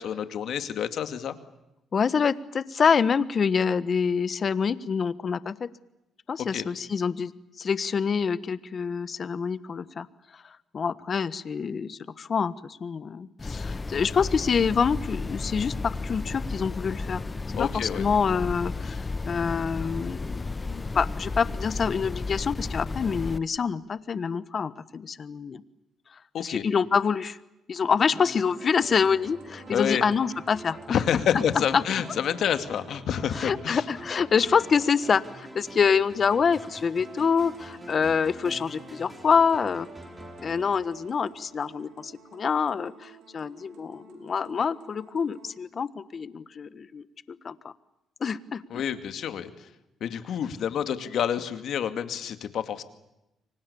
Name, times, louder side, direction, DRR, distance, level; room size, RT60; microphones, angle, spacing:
voice 1, 0.0-1.3 6.5-6.6 17.5-18.0 26.3-26.6 29.7-30.0 30.9-33.8 48.7-49.7 50.0-52.8, left 9 dB, 70° left, 9 dB, 2.3 m, -28 dB
voice 2, 1.9-5.7 6.3-7.3 7.6-10.1 10.3-17.2 17.5-25.6 26.4-27.4 27.7-31.0 31.3-31.8 33.3-39.9 40.4-47.0 47.4-47.5 48.2-48.6, left 6 dB, 45° left, 15 dB, 1.3 m, -26 dB
sound 1, 13.4-23.4, left 3 dB, 25° left, 1.0 m, -33 dB
sound 2, 28.2-41.7, right 1 dB, 15° right, 6.1 m, -45 dB
sound 3, 28.5-45.5, right 5 dB, 85° right, 4.9 m, -52 dB
30.0 x 24.5 x 7.1 m, 0.91 s
cardioid pair, 90°, 0 cm